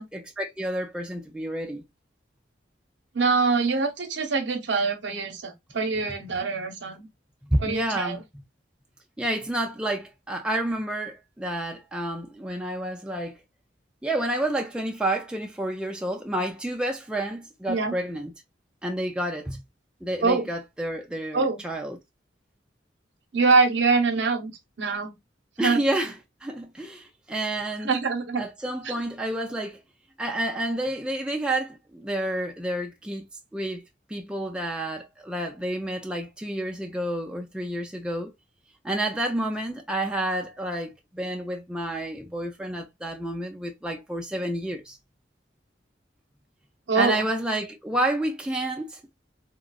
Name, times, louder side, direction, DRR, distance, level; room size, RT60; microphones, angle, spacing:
voice 1, 0.0-1.8 7.4-8.2 9.2-13.4 14.0-18.3 18.8-19.6 20.0-22.0 25.6-27.9 28.4-29.8 30.2-33.3 33.5-38.3 38.8-45.0 47.0-49.0, right 1 dB, 5° right, 0.3 m, -29 dB
voice 2, 3.1-7.1 7.6-8.2 17.7-17.9 20.2-20.5 21.3-21.6 23.3-24.5 24.8-25.1 25.6-25.8 27.8-28.4 28.8-28.9 46.9-47.3, right 4 dB, 70° right, 0.8 m, -24 dB
3.7 x 2.0 x 2.2 m
head